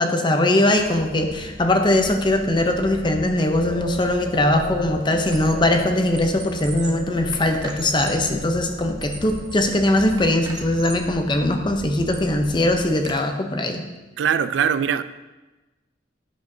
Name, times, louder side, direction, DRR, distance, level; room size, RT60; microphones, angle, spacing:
voice 1, 0.0-13.8, left 1 dB, 25° left, 5 dB, 0.7 m, -21 dB
sound 1, 0.7-13.1, equal, 50° right, 2.3 m, -38 dB
sound 2, 3.7-10.1, left 3 dB, 80° left, 1.2 m, -38 dB
Squeak, 3.9-4.2 4.5-5.7 6.0-8.3 8.8-9.8 10.2-11.1 11.6-13.2, right 3 dB, 20° right, 0.7 m, -40 dB
voice 2, 14.2-15.0, right 8 dB, 85° right, 13 dB, 0.3 m, -21 dB
10.5 x 7.3 x 2.7 m, 1.1 s
head